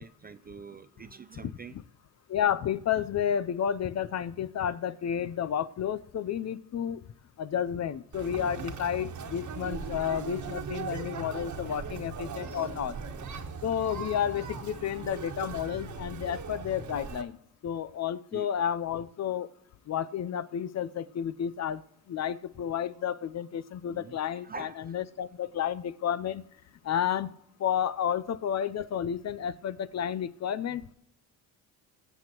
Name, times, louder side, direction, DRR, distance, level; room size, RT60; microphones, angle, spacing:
voice 1, 0.0-1.8 18.3-18.5 23.9-25.0, right 5 dB, 25° right, 0.3 m, -45 dB
voice 2, 2.3-7.0 7.4-13.0 13.6-17.4 17.6-19.5 19.9-21.8 22.1-26.5 26.8-30.9, left 9 dB, 40° left, 0.5 m, -31 dB
Conversation, 8.1-17.2, right 5 dB, 45° right, 1.4 m, -39 dB
21.5 x 7.8 x 3.0 m
cardioid pair, 85°, 42 cm